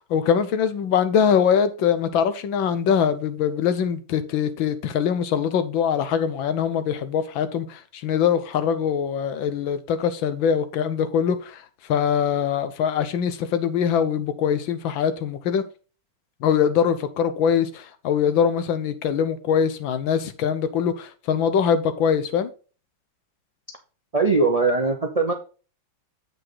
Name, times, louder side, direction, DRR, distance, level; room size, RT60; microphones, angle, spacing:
voice 1, 0.0-11.6 11.9-15.6 16.4-22.5, left 7 dB, 75° left, 1.6 m, -23 dB
voice 2, 24.1-25.3, right 3 dB, 55° right, 0.4 m, -20 dB
8.0 x 5.8 x 3.9 m
omnidirectional pair, 2.2 m